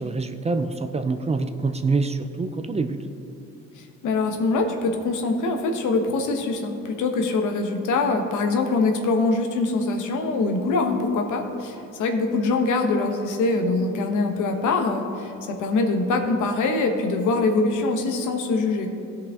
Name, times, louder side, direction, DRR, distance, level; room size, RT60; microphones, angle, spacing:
voice 1, 0.0-3.0, right 3 dB, 20° right, 8 dB, 0.5 m, -25 dB
voice 2, 3.8-18.9, left 3 dB, 80° left, 4 dB, 1.1 m, -23 dB
16.0 x 5.4 x 3.6 m, 2.7 s
cardioid pair, 90°, 30 cm